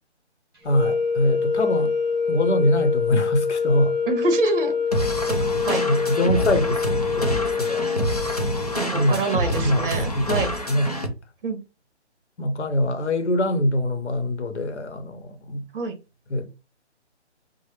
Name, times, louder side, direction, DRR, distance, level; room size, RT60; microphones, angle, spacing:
voice 1, 0.6-1.9 2.3-3.9 5.8-7.8 8.9-9.2 9.5-11.0 12.4-15.6 16.3-16.5, left 1 dB, 75° left, 0.8 m, -24 dB
sound 1, 0.7-8.9, left 5 dB, 20° right, 0.9 m, -25 dB
voice 2, 4.1-4.7 5.2-5.8 8.7-10.5 11.4-11.6 15.7-15.9, right 3 dB, 50° right, 0.8 m, -26 dB
sound 2, 4.9-11.1, equal, 35° left, 0.4 m, -27 dB
3.1 x 2.0 x 3.2 m
hypercardioid pair, 175°, 35 cm